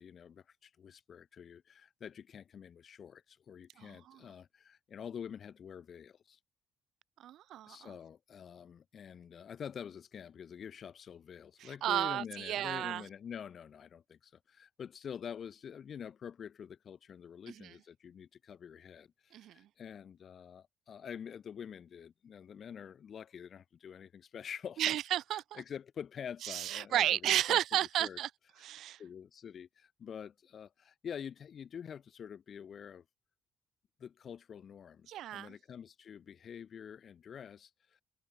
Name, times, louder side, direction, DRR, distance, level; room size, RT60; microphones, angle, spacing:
voice 1, 0.0-6.4 7.7-25.0 25.6-27.6 28.0-28.2 29.0-33.0 34.0-37.7, left 8 dB, 55° left, 5.5 m, -47 dB
voice 2, 3.8-4.2 7.2-8.0 11.6-13.0 17.5-17.7 19.3-19.7 24.8-25.6 26.4-28.3 28.6-29.0 35.1-35.5, right 12 dB, 80° right, 1.1 m, -33 dB
cardioid pair, 90°, 0 cm